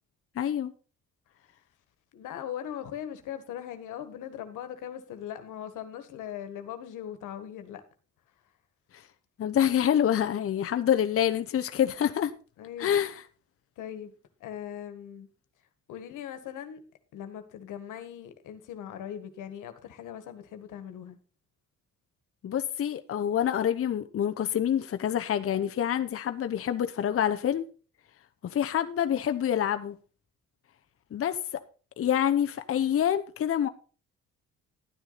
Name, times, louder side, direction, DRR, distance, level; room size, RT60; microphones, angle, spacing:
voice 1, 0.4-0.7 8.9-9.1 9.4-12.3 12.8-13.2 22.4-27.6 28.4-30.0 31.1-31.6 32.0-33.7, left 10 dB, 50° left, 0.8 m, -27 dB
voice 2, 2.1-7.8 12.6-13.0 13.8-15.3 15.9-16.8 17.1-21.2, left 10 dB, 85° left, 1.6 m, -40 dB
11.5 x 9.4 x 4.1 m
cardioid pair, 90°, 30 cm